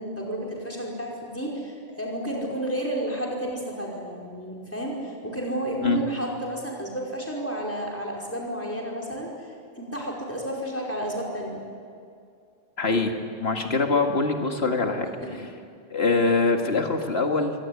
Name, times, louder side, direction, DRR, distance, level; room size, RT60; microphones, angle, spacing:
voice 1, 0.0-9.5 9.8-11.6 15.2-15.4, right 1 dB, 15° left, -1 dB, 5.2 m, -31 dB
voice 2, 12.8-13.1 13.4-15.1 15.9-17.5, left 3 dB, 75° left, 4 dB, 2.3 m, -23 dB
23.5 x 18.0 x 9.8 m, 2.3 s
omnidirectional pair, 1.1 m